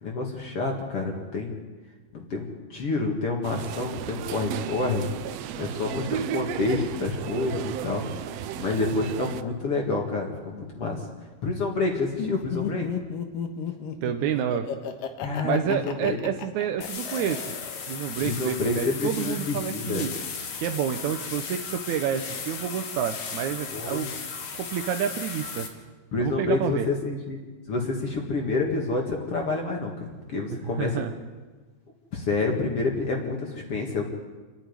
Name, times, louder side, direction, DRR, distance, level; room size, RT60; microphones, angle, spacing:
voice 1, 0.0-1.6 2.1-5.1 5.6-8.1 8.6-11.1 11.4-12.9 15.2-16.2 18.2-20.1 23.7-24.1 26.1-27.4 27.7-31.0 32.1-34.0, left 3 dB, 45° left, 1 dB, 2.6 m, -28 dB
sound 1, 3.4-9.4, right 10 dB, 85° right, 1.4 m, -34 dB
Laughter, 12.2-18.1, left 8 dB, 80° left, 3.0 m, -33 dB
voice 2, 14.0-14.7 15.4-17.5 17.9-20.1 20.6-24.1 24.5-25.7 26.2-26.9 30.5-31.1, right 9 dB, 70° right, 6 dB, 2.0 m, -29 dB
sound 2, 16.8-25.7, left 5 dB, 60° left, 3.3 m, -36 dB
28.5 x 10.5 x 9.6 m, 1.3 s
omnidirectional pair, 3.9 m